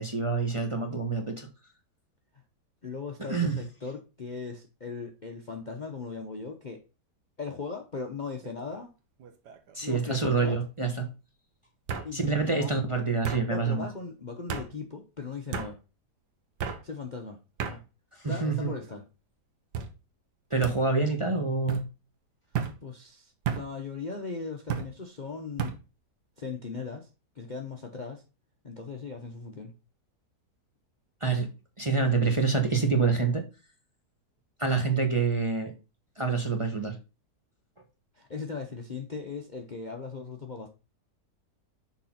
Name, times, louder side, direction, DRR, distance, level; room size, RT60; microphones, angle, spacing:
voice 1, 0.0-1.5 3.3-3.6 9.7-11.1 12.1-13.8 18.2-18.7 20.5-21.9 31.2-31.5 31.8-33.4 34.6-35.7 36.2-37.0, right 4 dB, 20° right, 1.0 m, -26 dB
voice 2, 2.8-6.8 7.4-8.9 9.8-10.6 12.0-12.7 13.5-15.8 16.8-17.8 18.3-19.0 22.8-25.8 26.4-27.1 27.4-28.2 28.6-29.7 38.1-40.7, left 4 dB, 35° left, 0.8 m, -38 dB
sound 1, 8.4-8.8 9.2-9.8 10.8-10.9 11.9-12.1 13.2-13.4 14.5-14.7 15.5-15.7 16.6-16.8 17.6-17.8 18.5-19.0 19.7-19.9 20.6-20.8 21.7-21.9 22.5-22.8 23.5-23.7 24.7-24.9 25.6-25.8, right 7 dB, 80° right, 1.6 m, -33 dB
6.6 x 4.1 x 5.7 m
omnidirectional pair, 1.8 m